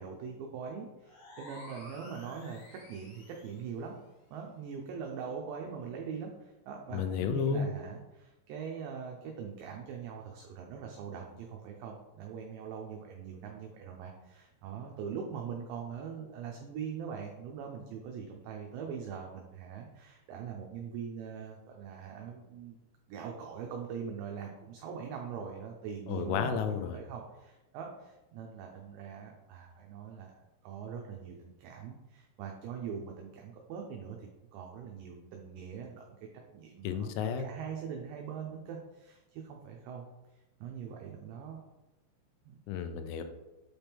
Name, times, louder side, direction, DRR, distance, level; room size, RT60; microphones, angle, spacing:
voice 1, 0.0-4.0 4.3-22.8 23.1-26.6 26.9-36.2 36.5-40.1 40.6-41.6 42.5-42.6, right 6 dB, 85° right, 1 dB, 2.5 m, -42 dB
sound 1, 1.0-3.7, left 1 dB, 65° left, 2.7 m, -52 dB
voice 2, 6.9-7.7 26.1-27.0 36.8-37.4 42.7-43.2, left 7 dB, 85° left, 8 dB, 3.1 m, -32 dB
8.0 x 4.4 x 3.5 m, 1.0 s
omnidirectional pair, 5.8 m